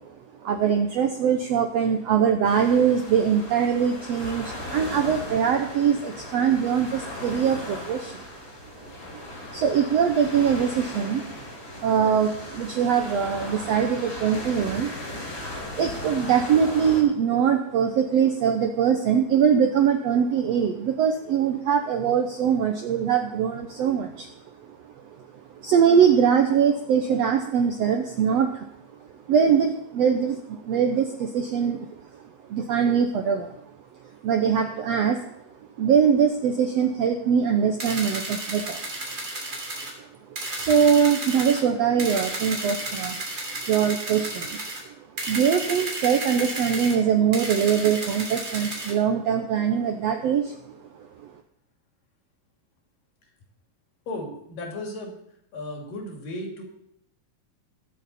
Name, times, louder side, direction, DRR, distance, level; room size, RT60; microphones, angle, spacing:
voice 1, 0.4-8.3 9.1-9.2 9.5-11.2 11.8-14.9 15.7-24.3 24.7-24.8 25.0-25.1 25.6-28.7 29.3-32.2 32.5-33.5 34.2-35.2 35.8-38.8 40.5-43.2 43.4-44.6 45.2-50.6 51.0-51.3, right 7 dB, 75° right, 4 dB, 1.5 m, -22 dB
sound 1, 2.4-17.0, left 1 dB, 30° left, 3.9 m, -37 dB
sound 2, 37.8-39.9 40.4-41.6 42.0-44.8 45.2-46.9 47.3-48.9, right 2 dB, 30° right, 3.7 m, -32 dB
voice 2, 54.1-55.1 55.5-56.6, left 1 dB, 70° left, 1 dB, 4.2 m, -35 dB
22.0 x 8.0 x 4.3 m, 0.76 s
omnidirectional pair, 4.0 m